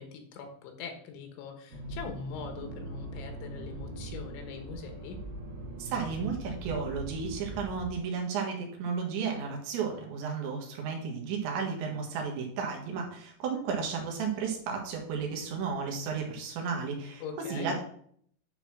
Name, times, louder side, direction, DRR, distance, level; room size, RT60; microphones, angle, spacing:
voice 1, 0.0-5.2 17.2-17.7, left 6 dB, 75° left, 5 dB, 3.5 m, -42 dB
Accelerating revving vroom, 1.7-7.9, right 1 dB, 50° right, 2.8 m, -41 dB
voice 2, 5.8-17.8, right 5 dB, 70° right, 1 dB, 3.6 m, -33 dB
9.8 x 4.2 x 5.9 m, 0.62 s
omnidirectional pair, 5.5 m